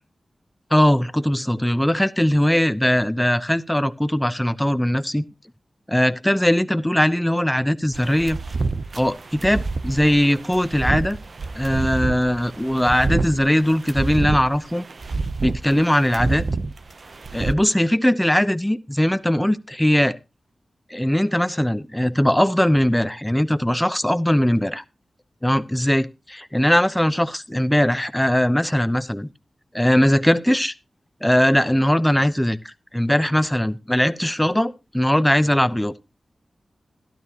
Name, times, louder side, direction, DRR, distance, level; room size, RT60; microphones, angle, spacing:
voice 1, 0.7-5.2 5.9-8.4 8.9-11.2 11.5-14.8 15.4-16.4 17.3-20.2 20.9-24.8 25.4-29.3 29.7-30.7 31.2-35.9, equal, 10° left, 13 dB, 0.9 m, -20 dB
sound 1, 7.9-17.5, right 3 dB, 60° right, 0.8 m, -28 dB
14.0 x 12.5 x 3.0 m, 0.27 s
cardioid pair, 50°, 0 cm